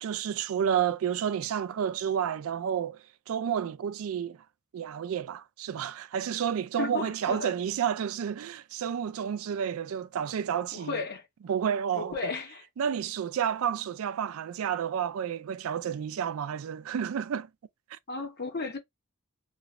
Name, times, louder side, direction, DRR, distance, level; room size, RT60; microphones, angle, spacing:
voice 1, 0.0-3.0 3.3-4.4 4.7-11.0 11.5-12.3 12.8-17.5 17.9-18.0, right 8 dB, 75° right, 0.3 m, -30 dB
voice 2, 6.8-7.6 10.7-11.3 11.9-12.6 18.1-18.8, left 4 dB, 50° left, 0.9 m, -34 dB
3.0 x 2.4 x 2.9 m
head